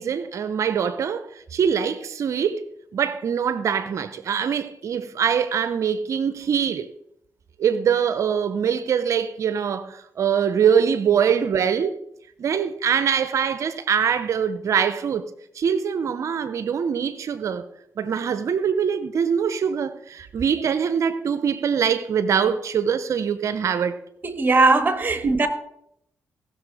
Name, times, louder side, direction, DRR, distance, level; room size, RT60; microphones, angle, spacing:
voice 1, 0.0-2.6 2.9-6.9 7.6-12.0 12.4-15.3 15.5-17.6 18.0-24.0 25.2-25.3, right 7 dB, 65° right, 0.8 m, -23 dB
voice 2, 24.2-25.5, right 3 dB, 35° right, 1.9 m, -19 dB
17.0 x 6.8 x 4.9 m
supercardioid pair, 60°, 6 cm